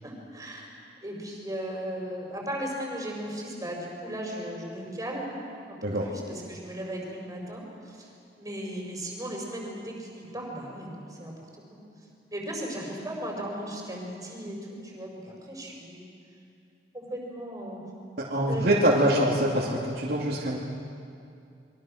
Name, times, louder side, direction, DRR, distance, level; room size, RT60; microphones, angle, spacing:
voice 1, 0.0-0.7 1.0-5.3 5.7-8.1 8.4-11.4 11.7-11.8 12.3-16.1 16.9-17.8 18.5-18.9, right 1 dB, 20° right, -1 dB, 5.0 m, -36 dB
voice 2, 18.2-20.6, right 1 dB, 60° right, -6 dB, 2.6 m, -24 dB
28.0 x 23.0 x 6.5 m, 2.5 s
head